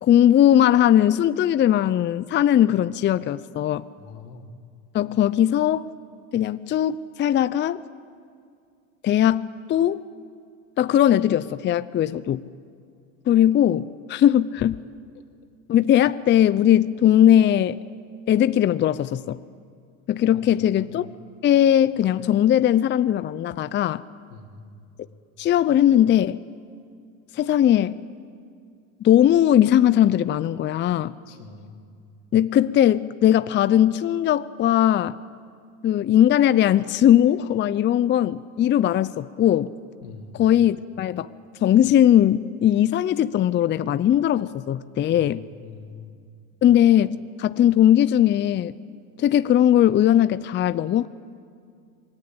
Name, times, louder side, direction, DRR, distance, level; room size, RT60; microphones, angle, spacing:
voice 1, 0.0-3.9 4.9-5.9 6.3-7.8 9.0-10.0 10.8-12.4 13.3-14.8 15.7-17.8 18.3-19.4 20.1-21.1 21.4-24.0 25.4-26.4 27.3-28.0 29.0-31.1 32.3-35.2 35.8-39.7 40.4-41.3 41.6-45.4 46.6-48.7 49.2-51.1, left 11 dB, 25° left, 0.5 m, -19 dB
voice 2, 4.0-4.5 15.1-15.2 20.3-21.0 24.3-24.9 30.9-31.8 40.0-40.5 45.0-46.2, left 4 dB, 80° left, 3.0 m, -44 dB
27.0 x 20.5 x 8.7 m
supercardioid pair, 105°, 43 cm